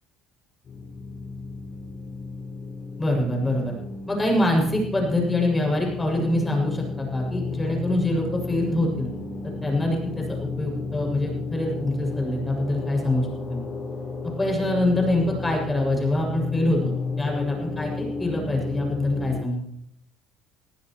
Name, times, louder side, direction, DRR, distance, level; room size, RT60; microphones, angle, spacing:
sound 1, 0.6-19.4, left 3 dB, 45° left, 6.0 m, -33 dB
voice 1, 3.0-3.7 4.1-9.1 9.6-13.6 14.4-16.9 17.2-19.6, left 1 dB, 15° left, 0 dB, 6.9 m, -25 dB
21.5 x 15.0 x 3.2 m, 0.76 s
cardioid pair, 110°, 0 cm